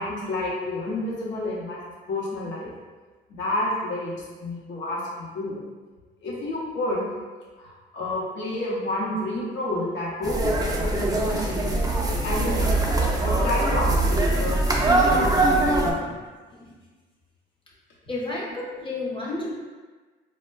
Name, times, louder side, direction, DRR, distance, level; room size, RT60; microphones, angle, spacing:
voice 1, 0.0-1.8 2.1-2.7 3.3-5.6 6.2-7.1 7.6-11.8 12.2-14.6 15.1-16.2, left 1 dB, 70° left, -6 dB, 0.8 m, -30 dB
sound 1, 10.2-15.9, right 2 dB, 20° right, 0.5 m, -22 dB
voice 2, 18.1-19.5, left 2 dB, 25° left, -4 dB, 0.8 m, -32 dB
4.2 x 2.2 x 2.2 m, 1.4 s
cardioid pair, 90°, 20 cm